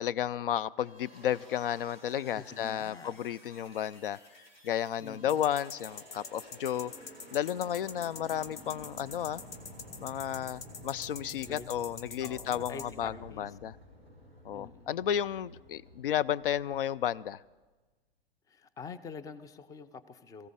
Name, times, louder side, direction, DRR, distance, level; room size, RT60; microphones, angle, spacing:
voice 1, 0.0-4.2 4.6-6.9 7.3-9.4 10.0-13.8 14.4-17.4, left 10 dB, 65° left, 20 dB, 0.4 m, -32 dB
sound 1, 0.8-17.4, equal, 85° left, 3.9 m, -52 dB
voice 2, 2.3-3.2 5.0-5.4 11.5-11.7 12.2-13.5 14.5-15.0 18.5-20.5, left 5 dB, 10° left, 14 dB, 0.5 m, -46 dB
sound 2, 5.3-12.8, left 5 dB, 40° left, 1.4 m, -44 dB
21.5 x 15.0 x 3.7 m, 1.2 s
figure-of-eight pair, 100°, 30 cm